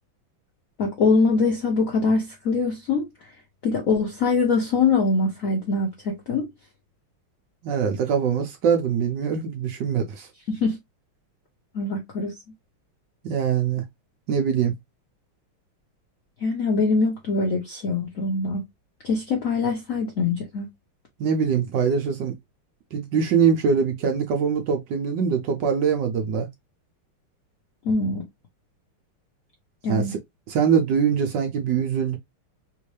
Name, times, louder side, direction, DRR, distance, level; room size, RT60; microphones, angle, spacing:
voice 1, 0.8-3.1 3.6-6.5 10.5-10.8 11.7-12.4 16.4-18.6 19.0-20.7 27.8-28.2 29.8-30.1, left 4 dB, 65° left, 0.8 m, -23 dB
voice 2, 7.6-10.3 13.2-13.8 14.3-14.7 21.2-22.4 22.9-26.5 29.9-30.2 30.5-32.2, right 6 dB, 70° right, 1.2 m, -23 dB
3.5 x 2.6 x 3.1 m
omnidirectional pair, 2.4 m